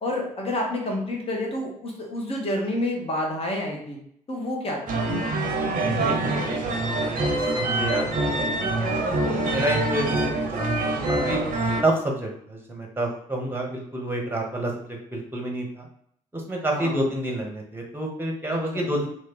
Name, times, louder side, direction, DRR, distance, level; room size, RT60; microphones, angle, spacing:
voice 1, 0.0-4.0 4.3-5.1 16.7-17.0 18.7-18.8, left 1 dB, 30° left, 0 dB, 1.0 m, -29 dB
sound 1, 4.9-11.8, right 2 dB, 45° right, 0.7 m, -25 dB
voice 2, 5.8-11.4 11.8-15.9 16.3-19.1, right 1 dB, 10° right, 0 dB, 1.0 m, -29 dB
2.6 x 2.5 x 3.7 m, 0.68 s
figure-of-eight pair, 45°, 18 cm